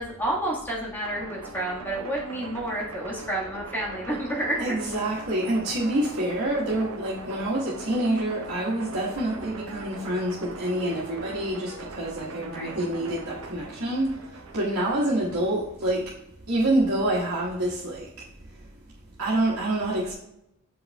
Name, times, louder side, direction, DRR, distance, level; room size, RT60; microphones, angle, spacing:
voice 1, 0.0-4.7 12.5-12.8, right 1 dB, 10° left, 1.6 m, -30 dB
sound 1, 1.0-14.7, right 3 dB, 70° right, 0.8 m, -41 dB
voice 2, 4.6-14.2 14.5-16.1 16.5-18.1 19.2-20.1, right 1 dB, 85° right, 1.5 m, -27 dB
7.7 x 5.4 x 2.3 m
head